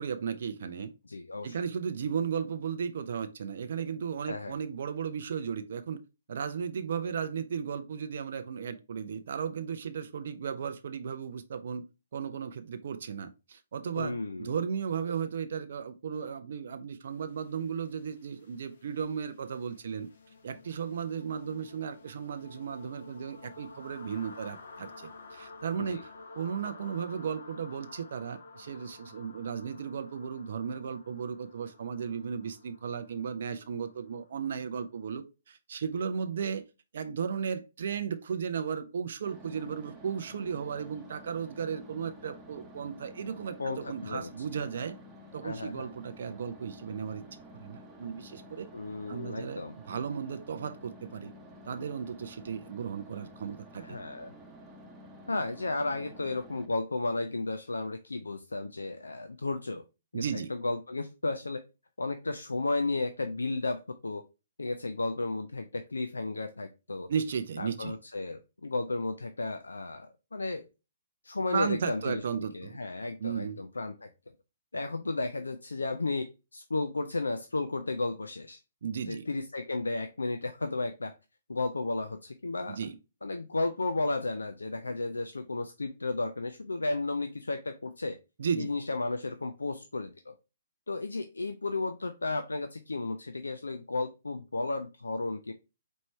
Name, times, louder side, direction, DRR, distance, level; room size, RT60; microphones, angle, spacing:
voice 1, 0.0-0.9 1.4-6.0 6.3-11.8 12.1-20.1 20.4-36.7 36.9-45.0 45.3-47.2 47.5-48.7 49.1-49.6 49.9-51.3 51.7-54.0 60.1-60.5 67.1-68.0 71.5-72.8 73.2-73.6 78.8-79.3 82.7-83.0 88.4-88.7, right 7 dB, 55° right, 0.4 m, -35 dB
voice 2, 1.1-1.6 4.3-4.6 14.0-14.5 25.8-26.0 43.6-44.3 45.4-45.9 48.7-49.8 53.8-54.3 55.3-59.8 60.1-61.6 62.0-64.2 64.6-67.1 67.6-70.7 71.2-74.1 74.7-78.6 79.1-81.1 81.5-82.8 83.2-88.2 88.6-90.3 90.9-95.5, left 2 dB, 80° left, 0.4 m, -33 dB
sound 1, 17.2-35.0, left 3 dB, 60° left, 1.1 m, -52 dB
sound 2, 39.2-56.7, equal, 10° right, 0.9 m, -51 dB
4.4 x 3.1 x 3.1 m
figure-of-eight pair, 125°, 0 cm